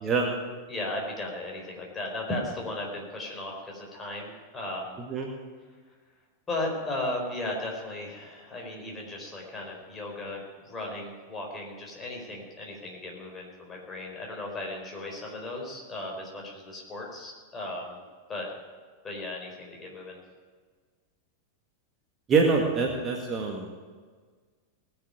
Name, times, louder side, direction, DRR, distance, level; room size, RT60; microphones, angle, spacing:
voice 1, 0.7-5.0 6.5-18.0 18.3-18.5 19.0-20.2, left 2 dB, 20° left, 0 dB, 4.6 m, -36 dB
voice 2, 22.3-23.7, right 4 dB, 25° right, 1 dB, 1.9 m, -25 dB
19.5 x 7.1 x 9.1 m, 1.5 s
figure-of-eight pair, 90°, 0 cm